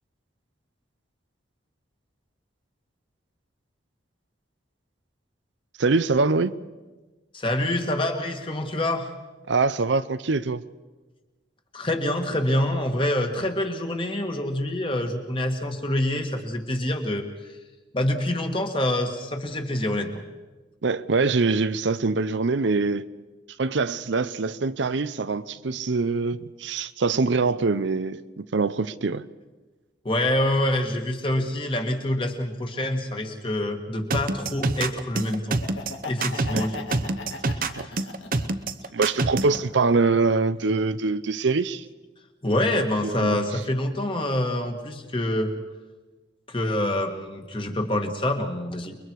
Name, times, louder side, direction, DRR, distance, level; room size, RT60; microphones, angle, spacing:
voice 1, 5.8-6.6 9.5-10.6 20.8-23.1 23.6-29.3 36.5-36.6 37.8-37.9 38.9-41.8 43.0-43.4, right 3 dB, 75° right, 0.6 m, -24 dB
voice 2, 7.3-9.1 11.7-17.2 17.9-20.2 30.1-35.6 36.1-37.2 37.4-38.1 42.4-45.5 46.5-49.0, left 1 dB, 25° left, 1.8 m, -26 dB
sound 1, 34.1-39.6, right 3 dB, 45° right, 0.9 m, -26 dB
Laughter, 35.5-38.6 39.1-40.2, left 3 dB, 85° left, 1.9 m, -38 dB
29.0 x 22.0 x 4.7 m
head